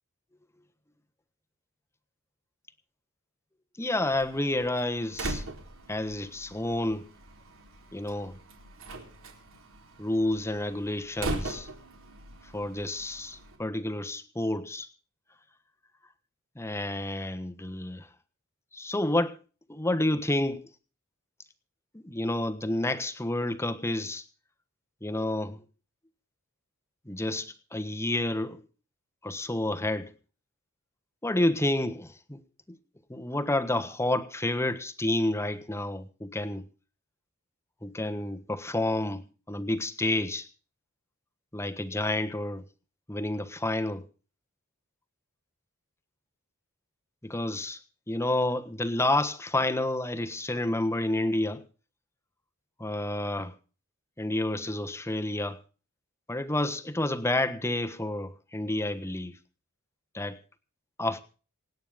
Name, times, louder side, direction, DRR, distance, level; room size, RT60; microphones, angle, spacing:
voice 1, 3.8-5.4 5.9-7.0 7.9-8.3 10.0-11.7 12.5-14.9 16.6-18.1 18.7-19.3 19.7-20.7 22.0-24.2 25.0-25.6 27.1-28.6 29.2-30.1 31.2-32.4 33.1-36.6 37.8-40.5 41.5-42.6 43.1-44.0 47.2-47.8 48.1-51.6 52.8-53.5 54.2-55.6 56.3-59.3 60.1-60.4 61.0-61.2, left 1 dB, 10° left, 1.3 m, -29 dB
Slam, 4.1-13.6, right 2 dB, 65° right, 3.9 m, -40 dB
27.0 x 9.3 x 3.6 m
head